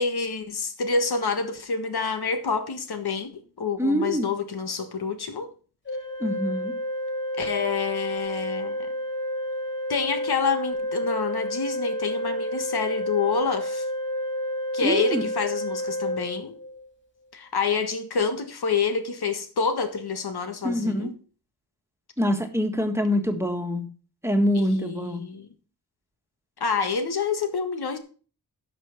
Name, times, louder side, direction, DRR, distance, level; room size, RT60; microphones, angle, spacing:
voice 1, 0.0-5.5 7.4-8.9 9.9-13.9 14.7-16.6 17.3-21.1 24.6-25.5 26.6-28.0, left 5 dB, 80° left, 1.7 m, -27 dB
voice 2, 3.8-4.3 6.2-6.7 14.8-15.2 20.6-21.1 22.2-23.9 24.2-25.2, equal, 5° right, 1.6 m, -25 dB
Organ, 5.9-16.9, equal, 30° left, 2.7 m, -30 dB
11.0 x 6.1 x 5.9 m
wide cardioid pair, 120°, 38 cm